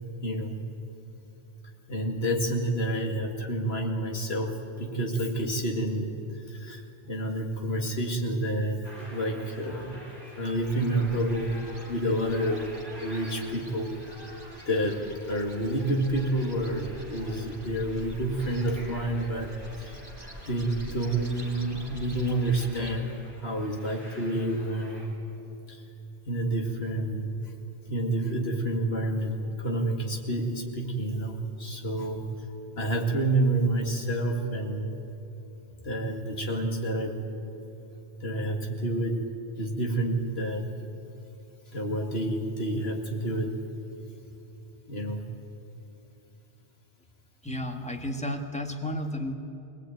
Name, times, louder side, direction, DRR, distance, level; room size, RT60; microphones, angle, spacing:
voice 1, 0.2-0.6 1.9-6.2 6.5-10.0 10.4-11.5 11.8-12.7 13.0-14.0 14.7-20.0 20.5-25.0 25.7-25.8 26.3-27.3 27.9-32.3 32.8-35.0 35.8-37.2 38.2-39.3 39.6-40.7 41.7-43.6 44.9-45.2, right 1 dB, 75° left, 2 dB, 2.5 m, -29 dB
sound 1, 8.8-25.1, equal, 55° left, 5.4 m, -49 dB
sound 2, 10.5-22.9, right 1 dB, 20° right, 2.5 m, -46 dB
voice 2, 47.4-49.3, left 1 dB, 5° left, 4 dB, 1.5 m, -32 dB
21.5 x 19.5 x 9.2 m, 2.7 s
omnidirectional pair, 1.1 m